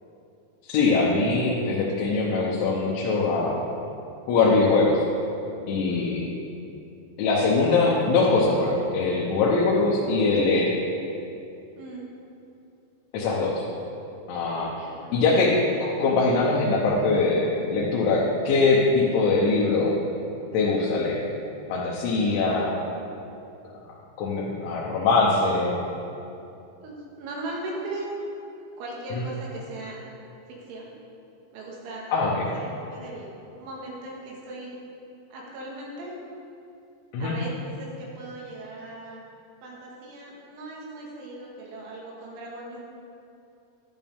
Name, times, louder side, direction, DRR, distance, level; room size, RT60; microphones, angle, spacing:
voice 1, 0.7-3.6 4.3-5.0 5.7-6.3 7.2-10.7 13.1-13.6 14.3-15.5 16.0-19.9 20.5-21.2 21.7-22.8 24.2-25.8 29.1-29.2 32.1-32.5 37.1-37.3, left 3 dB, 80° left, -5 dB, 3.3 m, -22 dB
voice 2, 11.8-12.1 14.8-15.2 26.8-28.1 28.8-30.0 30.5-30.9 31.5-32.1 32.5-33.3 33.6-34.8 35.3-36.1 37.2-39.2 39.6-42.8, right 2 dB, 85° right, -3 dB, 4.2 m, -38 dB
12.0 x 11.5 x 3.6 m, 2.7 s
omnidirectional pair, 5.5 m